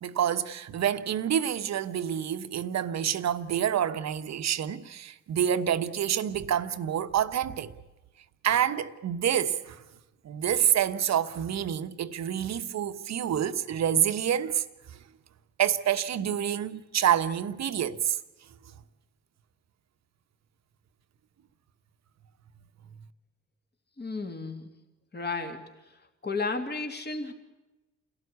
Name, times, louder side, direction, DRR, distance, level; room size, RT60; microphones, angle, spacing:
voice 1, 0.0-7.7 8.4-9.8 10.2-14.6 15.6-18.2, right 9 dB, 45° right, 1.2 m, -27 dB
voice 2, 24.0-24.7 25.1-25.6 26.2-27.3, left 3 dB, 30° left, 2.9 m, -33 dB
28.0 x 17.0 x 8.4 m
figure-of-eight pair, 45°, 36 cm